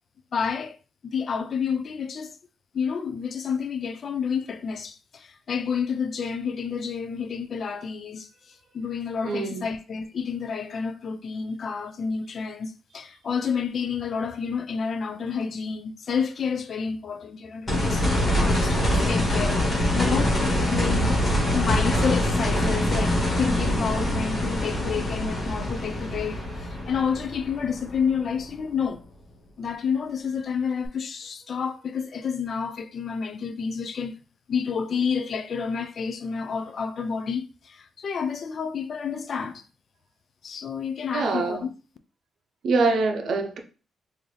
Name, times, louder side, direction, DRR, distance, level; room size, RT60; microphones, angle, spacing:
voice 1, 0.3-0.8 1.1-2.4 2.7-20.3 20.6-21.2 21.5-29.0 29.6-34.2 34.5-39.7 40.4-41.7, left 6 dB, 45° left, 0.3 m, -29 dB
voice 2, 9.3-9.7 41.1-41.6 42.6-43.6, right 3 dB, 60° right, 0.6 m, -24 dB
sound 1, 17.7-28.6 30.9-31.0, left 1 dB, 30° left, 1.6 m, -24 dB
3.7 x 2.6 x 3.2 m
cardioid pair, 135°, 0 cm